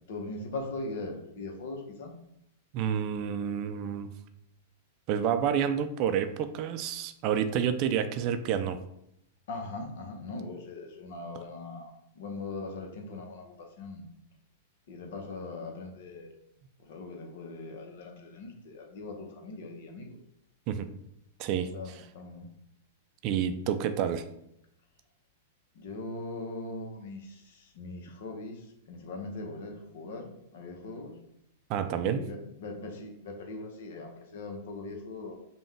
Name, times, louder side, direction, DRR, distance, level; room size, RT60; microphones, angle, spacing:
voice 1, 0.1-2.2 9.5-14.0 14.9-16.3 16.8-20.2 21.7-22.5 25.7-31.2 32.1-35.4, left 2 dB, 65° left, 3 dB, 0.9 m, -40 dB
voice 2, 2.7-4.1 5.1-8.8 20.7-20.9 21.4-21.7 23.2-24.2 31.7-32.3, right 8 dB, 45° right, 9 dB, 0.4 m, -29 dB
5.3 x 2.3 x 3.3 m, 0.77 s
hypercardioid pair, 105°, 0 cm